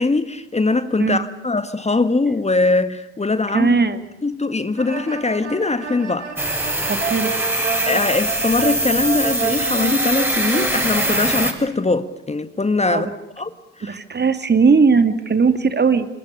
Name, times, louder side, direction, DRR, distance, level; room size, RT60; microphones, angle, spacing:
voice 1, 0.0-3.8 4.2-6.3 7.8-13.1 13.4-13.5 13.8-14.0, left 3 dB, 20° left, 1.7 m, -21 dB
voice 2, 3.5-4.0 6.9-7.3 12.9-13.1 13.8-16.1, right 5 dB, 30° right, 2.5 m, -18 dB
sound 1, 4.8-11.2, right 6 dB, 85° right, 1.7 m, -29 dB
sound 2, 6.4-11.5, right 1 dB, 5° right, 6.9 m, -22 dB
28.0 x 26.5 x 6.9 m
figure-of-eight pair, 40°, 34 cm